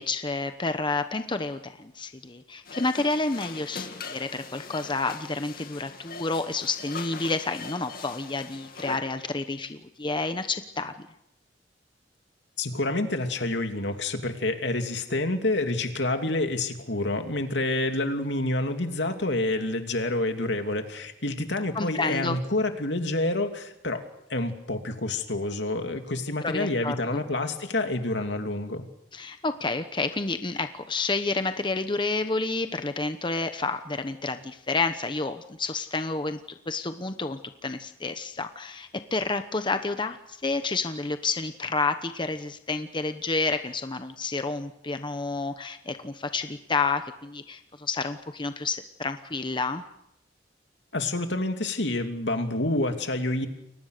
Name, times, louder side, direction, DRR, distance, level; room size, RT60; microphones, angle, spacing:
voice 1, 0.0-11.1 21.7-22.4 26.4-27.2 29.1-49.9, left 3 dB, 25° left, 9 dB, 1.0 m, -30 dB
sound 1, 2.6-9.0, left 5 dB, 55° left, 2.6 m, -41 dB
voice 2, 12.6-24.0 24.3-28.8 50.9-53.5, left 2 dB, 75° left, 5 dB, 3.0 m, -28 dB
30.0 x 23.0 x 6.8 m, 0.81 s
head